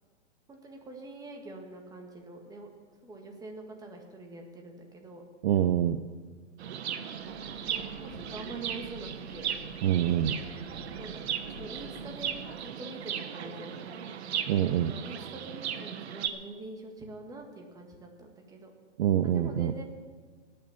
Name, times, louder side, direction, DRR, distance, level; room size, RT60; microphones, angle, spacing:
voice 1, 0.5-2.7 3.0-5.2 8.0-9.5 10.9-11.2 11.6-12.3 12.6-14.1 14.6-18.7 19.2-19.8, right 2 dB, 10° right, 2 dB, 1.7 m, -44 dB
voice 2, 5.4-6.0 9.8-10.4 14.5-14.9 19.0-19.7, right 10 dB, 45° right, 10 dB, 0.6 m, -25 dB
Chirp tweet, 6.6-16.3, right 8 dB, 60° right, 1.1 m, -37 dB
Breathing / Train, 7.1-12.8, left 3 dB, 35° left, 2.7 m, -50 dB
17.5 x 6.6 x 7.3 m, 1.5 s
hypercardioid pair, 140°, 36 cm